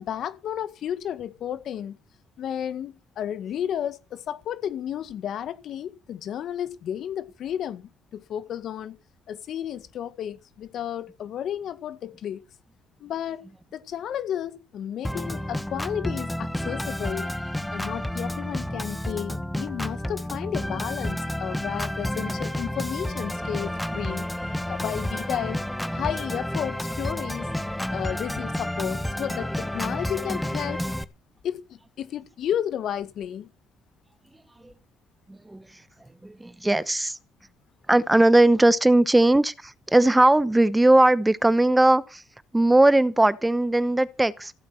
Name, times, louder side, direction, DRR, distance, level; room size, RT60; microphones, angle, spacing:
voice 1, 0.0-2.0 2.4-9.0 9.3-12.4 13.0-13.4 13.7-17.3 17.7-24.3 24.6-25.6 25.9-27.5 27.9-30.8 31.4-33.5, left 10 dB, 70° left, 1.8 m, -32 dB
Organ, 15.0-31.0, left 1 dB, 5° left, 1.2 m, -30 dB
voice 2, 35.3-35.8 36.2-37.2 37.9-42.2 42.5-44.5, right 1 dB, 10° right, 0.9 m, -19 dB
15.5 x 8.7 x 7.7 m
cardioid pair, 90°, 0 cm